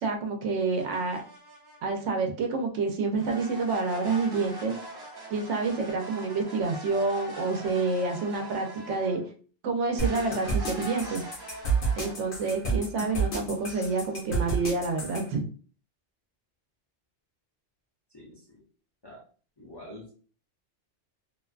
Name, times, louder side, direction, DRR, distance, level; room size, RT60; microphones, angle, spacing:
voice 1, 0.0-1.2 1.8-4.8 5.3-9.2 9.6-11.2 12.0-15.4, right 4 dB, 85° right, 3 dB, 0.9 m, -28 dB
sound 1, 0.8-2.0 3.2-9.3 9.9-12.1, equal, 40° right, 0.3 m, -43 dB
sound 2, 10.0-15.2, right 4 dB, 55° left, 0.9 m, -29 dB
voice 2, 18.1-18.6 19.0-19.3 19.6-20.1, left 1 dB, 30° left, -4 dB, 0.5 m, -46 dB
2.5 x 2.2 x 2.3 m, 0.40 s
omnidirectional pair, 1.2 m